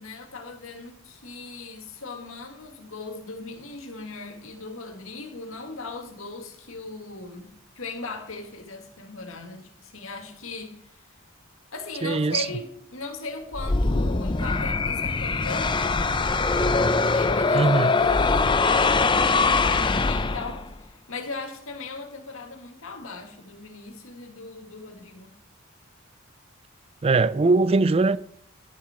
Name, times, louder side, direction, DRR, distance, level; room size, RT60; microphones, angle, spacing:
voice 1, 0.0-11.0 11.7-16.4 16.7-25.4, left 3 dB, 75° left, 1.9 m, -38 dB
voice 2, 12.0-12.5 17.5-17.9 27.0-28.2, right 3 dB, 30° right, 0.4 m, -21 dB
sound 1, 13.5-20.8, left 3 dB, 20° left, 0.5 m, -22 dB
11.5 x 7.2 x 4.8 m
head